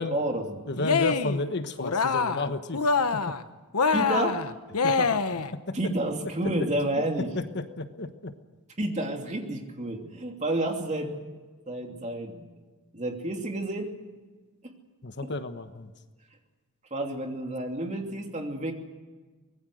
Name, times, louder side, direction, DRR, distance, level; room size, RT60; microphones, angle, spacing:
voice 1, 0.0-0.6 3.9-4.4 5.7-7.3 8.8-11.1 11.7-12.5 12.9-13.9 14.6-14.7 15.2-15.3 16.9-18.7, right 1 dB, 30° right, 3 dB, 2.9 m, -30 dB
Cheering, 0.7-1.4 1.8-2.5 2.7-3.4 3.7-5.5, left 4 dB, 85° left, 1.1 m, -25 dB
voice 2, 0.7-2.8 4.8-5.4 7.5-8.3 15.0-15.9, left 2 dB, 50° left, 9 dB, 1.2 m, -32 dB
24.5 x 20.0 x 6.4 m, 1.3 s
head